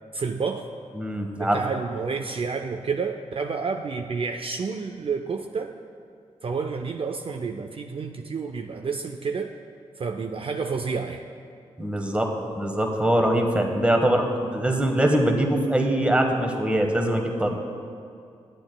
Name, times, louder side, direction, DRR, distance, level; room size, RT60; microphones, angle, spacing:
voice 1, 0.1-0.7 1.3-5.7 6.4-9.6 10.0-11.3, right 5 dB, 45° right, 5 dB, 0.4 m, -30 dB
voice 2, 1.0-1.6 11.8-12.3 12.5-17.6, right 1 dB, 10° right, 2 dB, 1.2 m, -23 dB
12.0 x 8.6 x 2.2 m, 2.4 s
cardioid pair, 45°, 13 cm